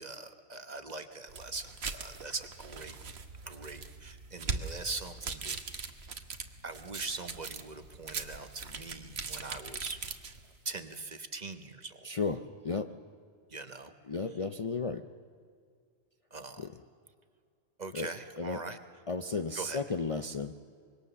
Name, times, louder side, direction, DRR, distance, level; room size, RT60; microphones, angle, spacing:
voice 1, 0.0-3.0 3.5-5.6 6.6-10.0 10.6-12.0 13.5-13.9 16.3-16.7 17.8-18.8 19.5-19.8, right 3 dB, 40° right, 8 dB, 1.3 m, -41 dB
sound 1, 1.3-10.6, right 4 dB, 65° right, 1.5 m, -41 dB
voice 2, 12.0-12.9 14.1-15.1 16.6-16.7 17.9-18.1 18.3-18.6 19.1-20.5, left 4 dB, 35° left, 8 dB, 0.6 m, -34 dB
25.5 x 22.5 x 6.9 m, 2.2 s
omnidirectional pair, 1.1 m